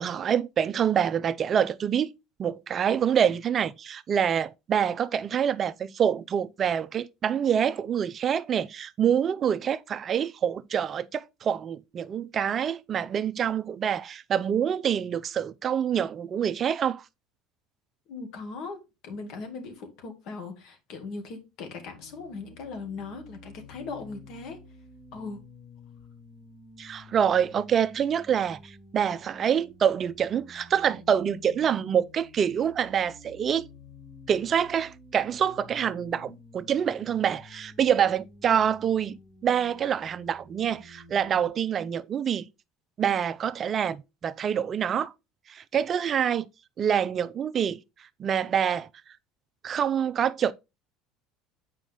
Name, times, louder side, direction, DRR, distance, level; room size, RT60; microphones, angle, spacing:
voice 1, 0.0-2.1 2.4-17.0 26.8-33.7 34.3-39.2 39.4-42.5 43.0-45.1 45.5-46.5 46.8-47.8 48.2-48.9 49.6-50.5, right 8 dB, 35° right, 0.4 m, -26 dB
voice 2, 18.1-24.6 25.1-25.4 36.2-36.4, left 4 dB, 60° left, 2.1 m, -39 dB
sound 1, 21.8-41.5, left 2 dB, 25° left, 1.8 m, -51 dB
7.5 x 5.0 x 3.7 m
supercardioid pair, 110°, 0 cm